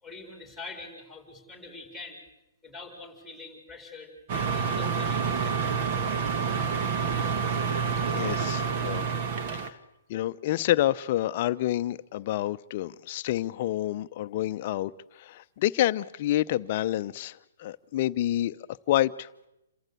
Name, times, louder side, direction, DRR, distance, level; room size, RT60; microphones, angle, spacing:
voice 1, 0.0-2.2 2.6-5.9, left 3 dB, 5° right, 4.4 m, -44 dB
sound 1, 4.3-9.7, right 6 dB, 40° right, 1.6 m, -28 dB
voice 2, 8.1-9.1 9.5-9.8 10.1-18.5 18.9-19.3, left 14 dB, 40° left, 0.7 m, -28 dB
27.5 x 14.5 x 8.3 m
hypercardioid pair, 145°, 0 cm